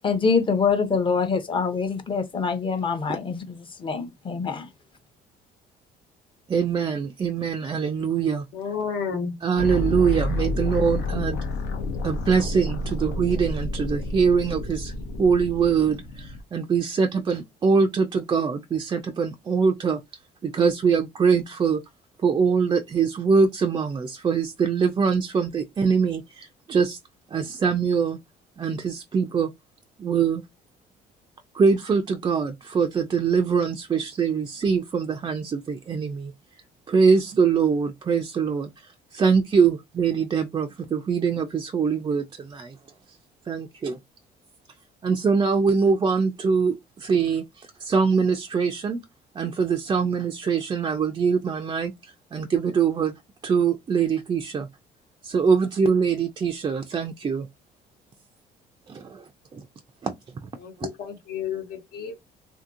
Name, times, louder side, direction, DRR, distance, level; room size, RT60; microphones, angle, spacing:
voice 1, 0.0-4.7, left 5 dB, 30° left, 0.7 m, -25 dB
voice 2, 6.5-8.4 9.4-11.4 12.0-14.9 15.2-20.0 20.4-21.8 22.2-27.0 27.3-28.2 28.6-29.5 30.0-30.4 31.5-36.3 36.9-42.7 43.5-44.0 45.0-49.0 49.4-53.1 53.4-54.7 55.2-57.5 58.9-59.2 59.5-59.7 60.0-60.1 60.8-60.9, right 5 dB, 25° right, 0.3 m, -23 dB
voice 3, 8.5-9.3 60.6-62.2, left 6 dB, 70° left, 1.1 m, -31 dB
sound 1, 9.6-16.4, left 1 dB, 90° left, 0.7 m, -29 dB
2.7 x 2.6 x 2.5 m
cardioid pair, 110°, 17 cm